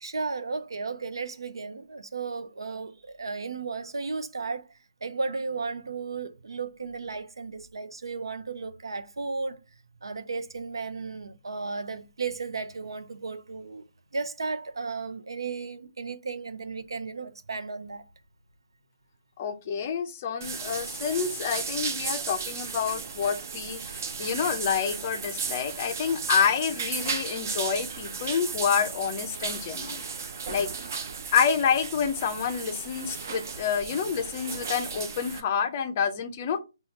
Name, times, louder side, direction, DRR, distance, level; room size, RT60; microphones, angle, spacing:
voice 1, 0.0-4.7 5.0-9.6 10.0-13.8 14.1-18.0, right 4 dB, 85° right, 0.5 m, -34 dB
voice 2, 19.4-30.0 30.5-30.7 31.3-36.6, left 7 dB, 25° left, 0.4 m, -28 dB
sound 1, 20.4-35.4, right 5 dB, 40° right, 0.5 m, -35 dB
5.6 x 2.2 x 2.8 m
hypercardioid pair, 170°, 2 cm